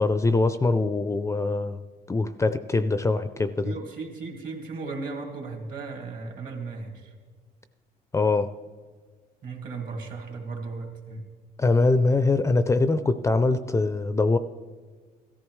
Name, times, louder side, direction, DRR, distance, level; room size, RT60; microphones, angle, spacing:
voice 1, 0.0-1.8 2.1-3.8 8.1-8.5 11.6-14.4, left 3 dB, 15° left, 11 dB, 0.4 m, -23 dB
voice 2, 3.6-7.1 9.4-11.2, right 4 dB, 55° right, 2 dB, 2.3 m, -36 dB
15.0 x 14.0 x 3.1 m, 1.5 s
cardioid pair, 110°, 17 cm